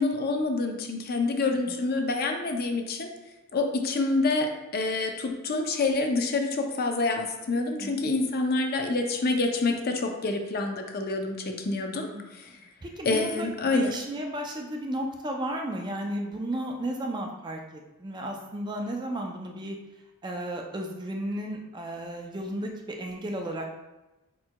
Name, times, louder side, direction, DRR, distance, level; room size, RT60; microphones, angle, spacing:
voice 1, 0.0-3.1 3.5-12.6 13.1-14.0, left 3 dB, 45° left, 4 dB, 0.5 m, -27 dB
voice 2, 7.6-8.3 11.9-12.3 12.8-19.8 20.2-23.8, right 1 dB, 20° right, 1 dB, 0.4 m, -34 dB
4.6 x 4.4 x 2.2 m, 1.0 s
head